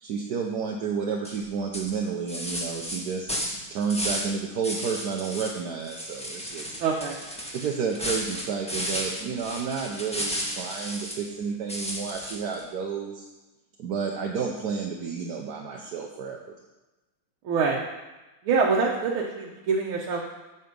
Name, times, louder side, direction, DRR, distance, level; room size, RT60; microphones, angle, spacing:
voice 1, 0.0-3.3 3.7-6.8 7.5-13.2 13.8-16.6, right 6 dB, 60° right, 0 dB, 1.1 m, -31 dB
sound 1, 1.2-1.4 1.7-4.3 4.6-5.6 5.8-11.3 11.7-12.6, equal, 5° left, 0.8 m, -33 dB
voice 2, 6.8-7.2 17.4-17.8 18.4-20.2, right 5 dB, 85° right, -3 dB, 1.8 m, -25 dB
8.2 x 7.1 x 5.3 m, 1.1 s
omnidirectional pair, 2.3 m